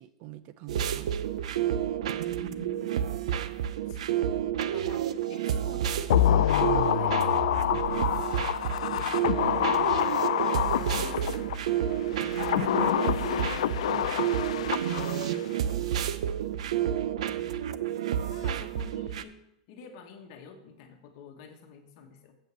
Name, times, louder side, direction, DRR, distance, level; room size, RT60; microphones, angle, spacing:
voice 1, 0.0-1.4 9.4-9.9 14.7-15.4 15.7-16.1, right 14 dB, 40° right, 14 dB, 0.4 m, -44 dB
sound 1, 0.7-19.2, right 10 dB, 90° right, 0.6 m, -30 dB
voice 2, 2.4-3.2 3.9-4.1 4.7-9.6 10.9-14.7 15.8-16.1 18.0-22.4, left 6 dB, 45° left, 4 dB, 1.4 m, -49 dB
sound 2, 6.1-11.6 12.2-15.4 15.7-15.8, left 12 dB, 85° left, 0.4 m, -27 dB
7.9 x 5.2 x 7.5 m, 0.80 s
supercardioid pair, 170°, 3 cm